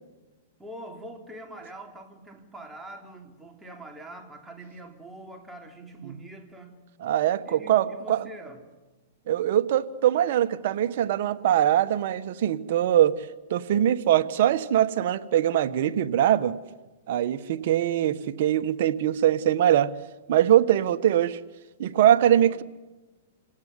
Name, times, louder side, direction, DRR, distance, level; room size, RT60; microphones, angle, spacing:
voice 1, 0.6-6.8 7.4-8.6 22.3-22.6, right 1 dB, 10° right, 3.4 m, -44 dB
voice 2, 7.0-8.3 9.3-16.6 17.1-19.9 20.3-21.4 21.8-22.6, right 11 dB, 60° right, 1.3 m, -22 dB
27.0 x 18.0 x 9.7 m
hypercardioid pair, 135°, 0 cm